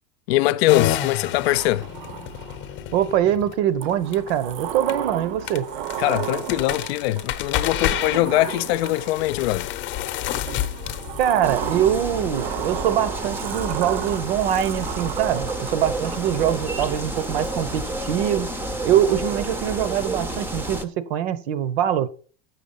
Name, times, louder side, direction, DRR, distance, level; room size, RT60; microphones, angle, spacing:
voice 1, 0.3-1.9 6.0-9.7, left 16 dB, 80° left, 0.5 m, -22 dB
sound 1, 0.7-14.9, left 11 dB, 35° left, 0.7 m, -31 dB
Sliding door, 1.5-2.8 3.8-9.4 10.5-17.6, right 12 dB, 60° right, 0.6 m, -34 dB
voice 2, 2.9-5.7 11.2-18.5 18.8-22.1, right 10 dB, 80° right, 1.0 m, -23 dB
sound 2, 11.4-20.8, right 1 dB, 5° right, 0.5 m, -30 dB
7.3 x 6.0 x 5.5 m
supercardioid pair, 165°, 31 cm